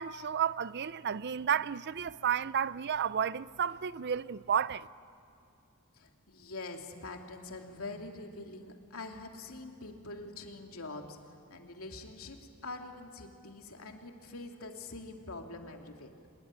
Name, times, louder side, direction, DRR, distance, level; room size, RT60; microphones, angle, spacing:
voice 1, 0.0-4.9, right 8 dB, 50° right, 0.5 m, -32 dB
voice 2, 5.9-11.2 11.5-16.1, left 2 dB, 80° left, 2.7 m, -44 dB
25.5 x 21.5 x 9.8 m
head